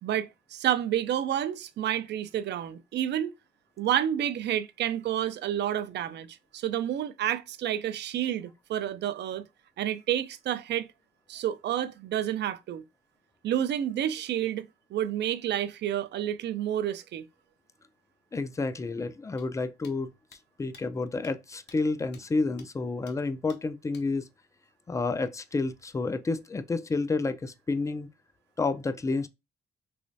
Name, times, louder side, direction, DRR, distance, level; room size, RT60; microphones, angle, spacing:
voice 1, 0.0-3.3 3.8-9.5 9.8-10.9 11.3-12.8 13.4-17.2, right 11 dB, 60° right, 0.4 m, -30 dB
voice 2, 18.3-20.1 20.6-24.3 24.9-28.1 28.6-29.3, left 3 dB, 15° left, 0.3 m, -30 dB
sound 1, 19.4-19.5 19.8-19.9 20.3-20.4 20.7-20.8 21.2-21.3 21.7-21.8 22.1-22.2 22.6-22.7 23.1-23.2 23.5-23.6 23.9-24.0, left 5 dB, 60° left, 0.7 m, -53 dB
3.2 x 3.0 x 2.6 m
cardioid pair, 90°, 20 cm